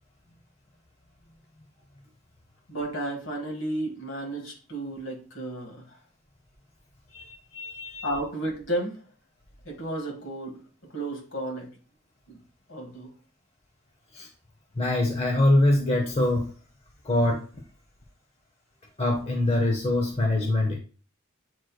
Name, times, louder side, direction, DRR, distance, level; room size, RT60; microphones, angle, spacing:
voice 1, 2.7-5.9 8.0-9.0 9.6-10.6 10.9-11.7 12.3-12.4 12.7-13.1, right 1 dB, 70° left, 1 dB, 1.6 m, -32 dB
voice 2, 7.1-8.1 14.1-14.3 14.7-16.5 17.0-17.4 19.0-20.8, left 1 dB, 30° left, 2 dB, 0.7 m, -24 dB
7.6 x 3.1 x 2.2 m, 0.38 s
head